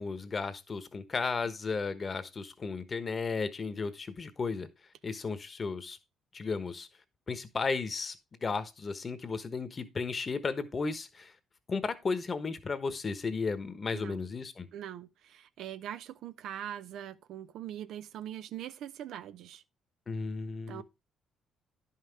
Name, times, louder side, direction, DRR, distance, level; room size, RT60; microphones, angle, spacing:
voice 1, 0.0-4.7 5.0-6.0 6.3-6.9 7.3-8.2 8.4-11.3 11.7-14.7 20.1-20.8, left 4 dB, 40° left, 1.1 m, -34 dB
voice 2, 13.9-14.3 14.7-19.6 20.7-20.8, right 11 dB, 75° right, 0.5 m, -42 dB
10.5 x 5.8 x 3.5 m
supercardioid pair, 75°, 0 cm